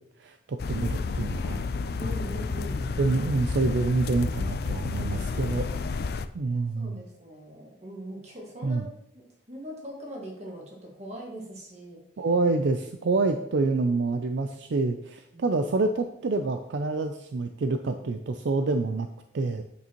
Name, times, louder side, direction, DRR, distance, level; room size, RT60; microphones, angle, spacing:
voice 1, 0.2-1.6 3.0-5.7 6.3-7.0 8.6-8.8 12.2-19.1 19.3-19.6, right 3 dB, 65° right, 7 dB, 0.4 m, -27 dB
sound 1, 0.6-6.3, left 4 dB, 50° left, 0.4 m, -30 dB
voice 2, 2.0-2.9 6.5-12.0 15.3-15.6, equal, 35° right, -1 dB, 1.7 m, -41 dB
8.3 x 6.7 x 3.0 m, 0.77 s
head